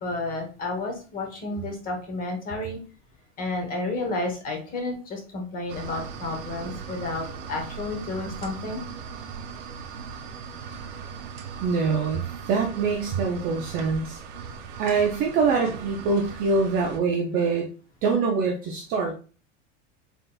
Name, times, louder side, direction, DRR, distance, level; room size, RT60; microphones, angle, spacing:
voice 1, 0.0-2.8 3.4-8.8, left 2 dB, 25° left, 2 dB, 1.0 m, -31 dB
sound 1, 5.7-17.0, right 6 dB, 80° right, 0.8 m, -39 dB
voice 2, 11.6-14.2 14.8-17.7 18.0-19.1, right 4 dB, 25° right, 1 dB, 0.4 m, -24 dB
3.9 x 3.8 x 2.2 m, 0.36 s
supercardioid pair, 155°, 35 cm